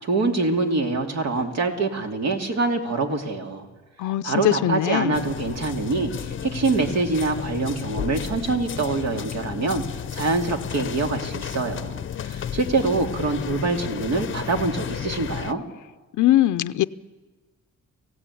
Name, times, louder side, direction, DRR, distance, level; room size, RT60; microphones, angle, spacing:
voice 1, 0.0-3.7 4.2-15.6, right 3 dB, 60° right, 4 dB, 2.7 m, -25 dB
voice 2, 4.0-5.2 16.2-16.8, left 14 dB, 80° left, 12 dB, 0.6 m, -21 dB
sound 1, 5.1-15.5, left 9 dB, 40° left, 0.7 m, -33 dB
23.5 x 16.5 x 8.5 m, 1.3 s
cardioid pair, 90°, 30 cm